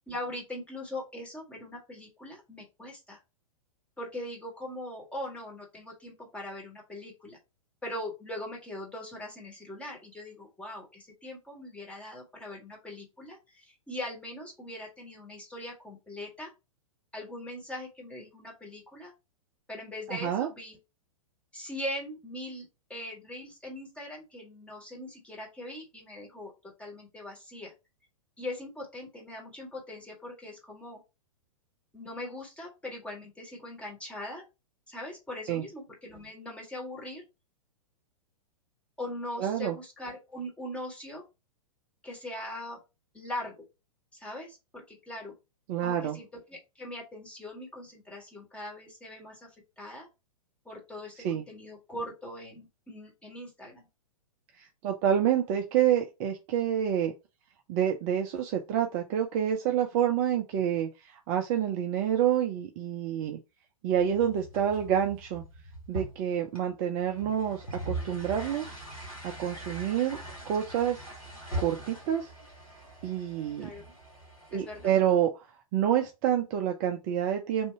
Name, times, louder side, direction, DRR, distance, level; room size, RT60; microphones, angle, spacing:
voice 1, 0.1-3.2 4.0-7.4 7.8-16.5 17.1-19.1 19.7-20.8 21.5-26.5 26.8-27.7 28.4-31.0 31.9-34.4 34.9-37.2 39.0-41.2 42.0-42.8 43.1-43.5 44.1-45.3 45.8-50.1 50.6-53.9 73.6-73.9 74.5-74.9, left 1 dB, 5° left, -2 dB, 1.5 m, -41 dB
voice 2, 20.1-20.5 35.5-35.6 39.4-39.8 45.7-46.2 51.2-51.4 54.6-57.1 57.7-63.4 63.8-65.4 65.9-68.7 69.2-70.2 70.5-71.0 71.6-72.3 73.0-73.7 74.5-75.5 75.7-77.7, right 9 dB, 30° right, 4 dB, 0.5 m, -28 dB
sound 1, 63.9-74.9, right 1 dB, 90° left, 2.1 m, -41 dB
3.5 x 2.7 x 4.4 m, 0.27 s
figure-of-eight pair, 105°, 18 cm